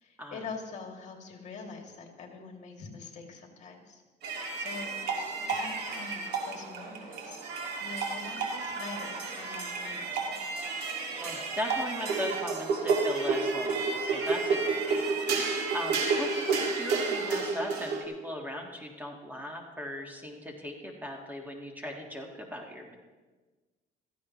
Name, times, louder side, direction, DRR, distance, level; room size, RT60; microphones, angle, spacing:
voice 1, 0.0-4.0 4.3-5.0 5.5-10.3, left 4 dB, 45° left, 1 dB, 2.5 m, -44 dB
sound 1, 4.2-18.0, right 4 dB, 80° right, 2.3 m, -31 dB
voice 2, 11.2-15.0 15.3-23.0, equal, 10° right, 1 dB, 1.7 m, -38 dB
16.0 x 14.5 x 3.1 m, 1.3 s
cardioid pair, 110°, 17 cm